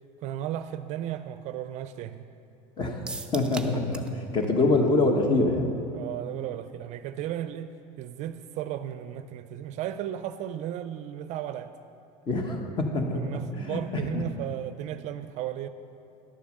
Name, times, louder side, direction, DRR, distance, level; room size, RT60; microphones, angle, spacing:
voice 1, 0.2-2.2 5.9-11.7 13.1-15.7, right 11 dB, 50° right, 11 dB, 0.4 m, -35 dB
sound 1, 3.1-4.2 4.4-4.5 4.9-5.0, right 3 dB, 5° right, 0.6 m, -39 dB
voice 2, 3.3-5.7 12.3-13.2 13.6-14.2, left 2 dB, 30° left, 4 dB, 1.3 m, -25 dB
11.5 x 6.8 x 6.6 m, 2.6 s
supercardioid pair, 130°, 16 cm